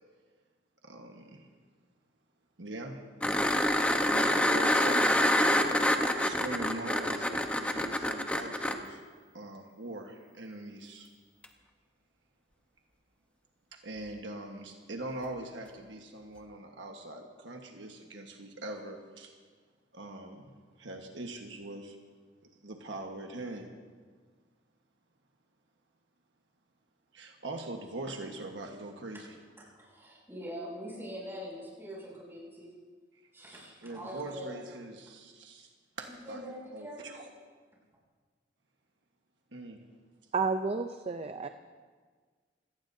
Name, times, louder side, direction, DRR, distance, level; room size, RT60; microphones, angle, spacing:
voice 1, 0.8-1.5 2.6-3.1 4.0-5.2 5.7-9.0 9.3-11.1 13.7-19.3 19.9-22.0 22.4-23.7 27.1-29.4 33.5-35.7 36.0-36.4 36.7-37.3 39.5-39.8, right 2 dB, 75° right, 2 dB, 1.4 m, -42 dB
sound 1, 3.2-8.7 11.4-11.5, left 1 dB, 5° left, 1.0 m, -26 dB
voice 2, 29.7-32.7 33.3-34.6 36.0-37.1, equal, 15° right, -5 dB, 6.6 m, -43 dB
voice 3, 40.3-41.5, right 4 dB, 35° right, 8 dB, 0.5 m, -31 dB
27.5 x 18.0 x 2.7 m, 1.5 s
head